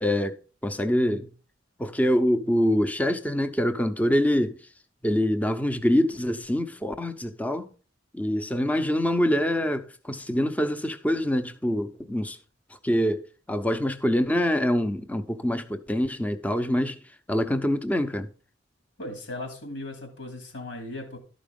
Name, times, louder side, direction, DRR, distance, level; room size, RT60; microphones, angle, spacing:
voice 1, 0.0-1.3 1.8-4.6 5.0-7.7 8.1-12.4 12.8-13.2 13.5-17.0 17.3-18.3, equal, 10° left, 0.7 m, -25 dB
voice 2, 19.0-21.2, left 1 dB, 80° left, 3.0 m, -37 dB
12.5 x 5.1 x 5.3 m
head